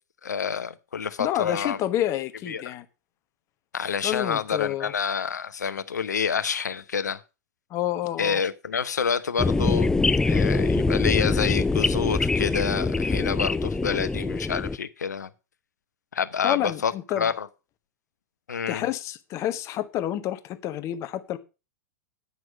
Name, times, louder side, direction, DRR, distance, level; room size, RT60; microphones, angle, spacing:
voice 1, 0.2-1.8 2.5-2.6 3.7-7.2 8.2-9.9 10.2-15.3 16.1-17.5 18.5-18.8, left 6 dB, 70° left, 13 dB, 0.9 m, -28 dB
voice 2, 1.2-2.8 4.0-4.9 7.7-8.4 16.4-17.3 18.7-21.4, left 12 dB, 30° left, 11 dB, 1.1 m, -29 dB
sound 1, 9.4-14.8, left 3 dB, 5° left, 0.4 m, -24 dB
9.8 x 6.2 x 6.4 m, 0.30 s
figure-of-eight pair, 100°, 10 cm